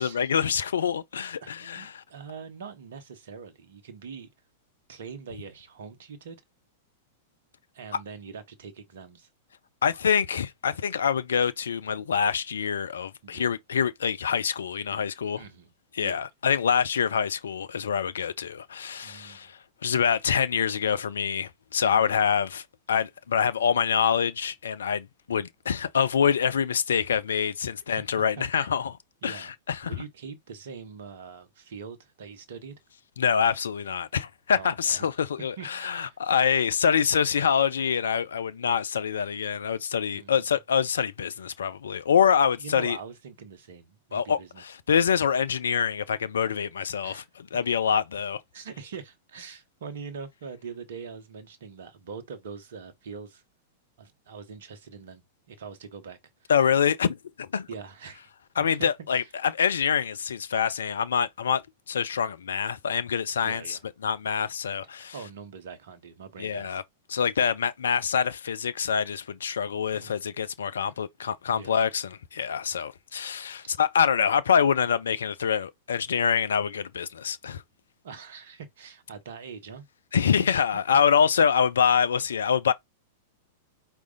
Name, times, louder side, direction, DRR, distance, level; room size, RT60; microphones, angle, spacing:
voice 1, 0.0-2.0 9.8-15.4 15.9-28.9 29.2-29.9 33.2-43.0 44.1-47.2 47.5-48.4 56.5-57.7 58.6-61.6 61.9-65.1 66.4-66.8 67.1-77.6 80.1-82.7, left 7 dB, 65° left, 0.4 m, -25 dB
voice 2, 1.4-4.3 4.9-6.4 7.7-9.3 13.2-13.5 15.4-15.7 16.0-16.2 19.0-19.5 21.9-22.2 28.4-28.7 29.2-29.5 29.8-32.7 34.5-35.1 35.6-36.2 40.1-40.5 42.6-44.6 47.0-47.3 48.5-53.4 54.0-55.2 55.5-56.5 57.7-58.2 58.7-59.3 63.4-63.8 64.8-66.8 67.4-67.5 69.9-70.2 70.9-71.0 71.5-71.8 78.0-79.9 80.7-81.3, right 6 dB, 60° right, 1.0 m, -43 dB
4.8 x 2.5 x 3.8 m
figure-of-eight pair, 95°, 0 cm